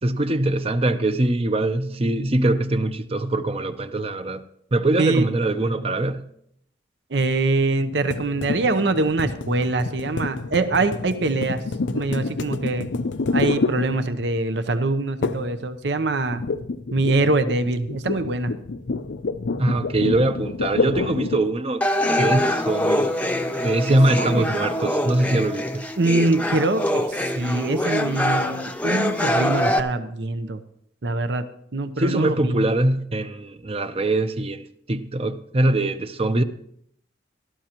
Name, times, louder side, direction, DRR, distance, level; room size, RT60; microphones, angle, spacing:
voice 1, 0.0-4.4 4.7-6.2 19.6-21.8 22.2-23.1 23.6-25.8 32.0-36.4, right 2 dB, 35° right, 0.7 m, -22 dB
voice 2, 7.1-11.6 11.9-12.9 13.3-16.4 16.9-18.5 23.9-24.5 26.0-30.6 31.0-31.5 31.7-32.5, right 2 dB, 70° right, 0.8 m, -23 dB
sound 1, 8.1-14.4 15.2-15.6 15.9-21.6, left 3 dB, 80° left, 0.6 m, -28 dB
sound 2, 21.8-29.8, left 1 dB, 10° left, 0.8 m, -24 dB
17.5 x 13.0 x 3.0 m
head